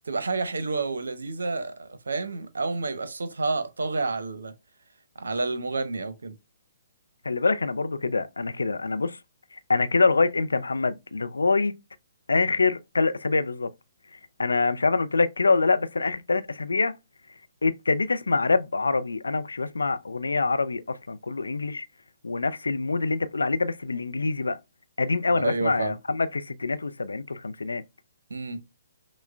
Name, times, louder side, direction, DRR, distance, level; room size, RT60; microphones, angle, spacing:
voice 1, 0.1-4.5 5.2-6.3 25.3-25.9 28.3-28.6, right 3 dB, 75° right, 0.7 m, -29 dB
voice 2, 7.2-9.2 9.7-11.8 12.3-13.7 14.4-16.9 17.6-21.9 22.2-24.6 25.0-27.8, left 3 dB, 80° left, 0.4 m, -25 dB
5.9 x 2.1 x 2.3 m
figure-of-eight pair, 130°, 0 cm